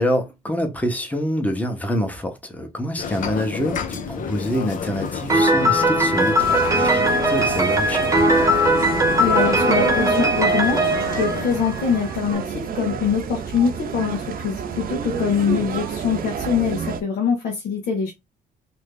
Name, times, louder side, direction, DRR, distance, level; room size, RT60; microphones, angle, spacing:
voice 1, 0.0-8.1, equal, 10° left, 0.9 m, -26 dB
sound 1, 3.0-11.6, left 6 dB, 55° left, 0.6 m, -31 dB
Piano, 5.3-12.1, right 1 dB, 20° right, 0.9 m, -19 dB
sound 2, 6.4-17.0, right 6 dB, 60° right, 0.6 m, -29 dB
voice 2, 9.2-18.1, left 6 dB, 90° left, 1.0 m, -24 dB
2.9 x 2.6 x 3.6 m
cardioid pair, 110°, 17 cm